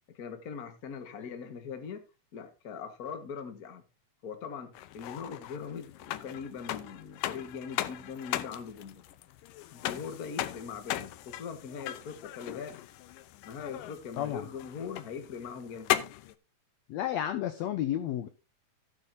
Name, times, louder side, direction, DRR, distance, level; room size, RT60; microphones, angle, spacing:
voice 1, 0.1-2.0 2.3-3.8 4.2-9.0 9.7-12.8 13.4-15.9, left 6 dB, 45° left, 1.3 m, -41 dB
sound 1, 4.8-16.3, left 13 dB, 90° left, 2.4 m, -38 dB
voice 2, 14.2-14.5 16.9-18.3, left 11 dB, 75° left, 1.6 m, -31 dB
15.0 x 8.5 x 2.7 m
omnidirectional pair, 3.8 m